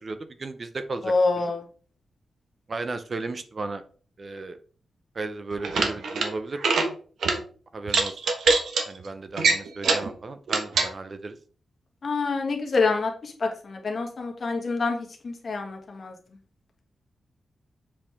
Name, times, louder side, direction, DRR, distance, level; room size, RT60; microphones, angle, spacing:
voice 1, 0.0-1.4 2.7-3.8 4.2-4.6 5.1-6.6 7.7-8.1 8.9-11.4, right 3 dB, 35° right, 10 dB, 0.6 m, -35 dB
voice 2, 1.0-1.6 12.0-16.1, left 3 dB, 45° left, 2 dB, 1.6 m, -26 dB
sound 1, 5.5-6.3 6.6-6.9 7.2-7.4 7.9-8.8 9.4-10.1 10.5-10.9, right 4 dB, 90° right, 1.2 m, -23 dB
7.3 x 4.7 x 3.5 m, 0.41 s
wide cardioid pair, 145°, 0 cm